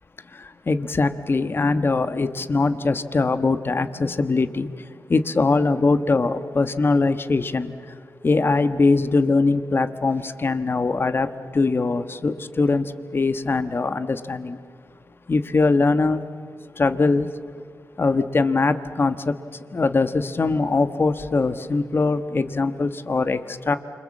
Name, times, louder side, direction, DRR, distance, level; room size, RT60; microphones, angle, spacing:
voice 1, 0.3-7.7 8.2-14.6 15.3-16.2 16.8-17.3 18.0-19.4 19.7-23.8, left 3 dB, 40° left, 11 dB, 1.3 m, -22 dB
28.0 x 25.5 x 7.4 m, 2.2 s
cardioid pair, 70°, 6 cm